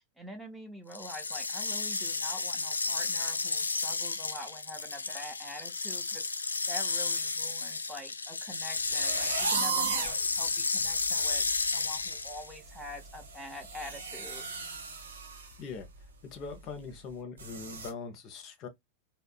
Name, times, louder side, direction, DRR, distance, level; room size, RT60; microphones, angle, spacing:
voice 1, 0.2-6.3 6.6-14.4, left 1 dB, 5° right, 0.7 m, -45 dB
sound 1, 0.9-12.5, left 4 dB, 75° left, 0.3 m, -32 dB
sound 2, 8.9-10.3 10.8-10.9 11.3-11.6 11.8-15.5 15.8-16.0 16.5-16.6 17.4-17.9, right 4 dB, 70° right, 0.7 m, -35 dB
voice 2, 16.3-18.7, left 5 dB, 40° left, 0.6 m, -41 dB
3.5 x 2.0 x 2.2 m
figure-of-eight pair, 90°, 0 cm